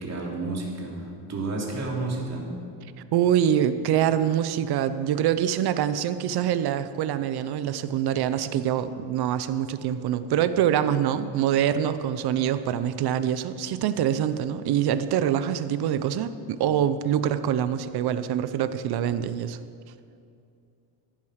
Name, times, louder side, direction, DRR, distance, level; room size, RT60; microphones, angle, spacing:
voice 1, 0.0-2.5, right 2 dB, 35° right, -1 dB, 2.8 m, -31 dB
voice 2, 3.1-19.6, right 10 dB, 60° right, 12 dB, 0.7 m, -25 dB
15.5 x 9.0 x 6.4 m, 2.5 s
cardioid pair, 155°, 44 cm